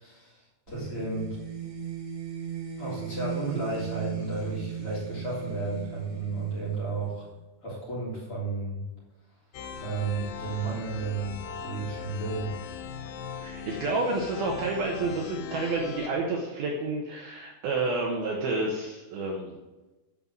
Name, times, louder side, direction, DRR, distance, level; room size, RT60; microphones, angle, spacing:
voice 1, 0.0-1.4 2.8-7.3 7.6-8.8 9.8-12.6, right 3 dB, 30° left, -7 dB, 4.1 m, -33 dB
sound 1, 0.7-7.3, right 9 dB, 45° right, 5.0 m, -38 dB
sound 2, 9.5-16.1, left 6 dB, 80° left, 2.2 m, -39 dB
voice 2, 13.4-19.5, right 3 dB, 65° right, -1 dB, 2.6 m, -30 dB
12.5 x 5.6 x 7.4 m, 1.1 s
omnidirectional pair, 5.4 m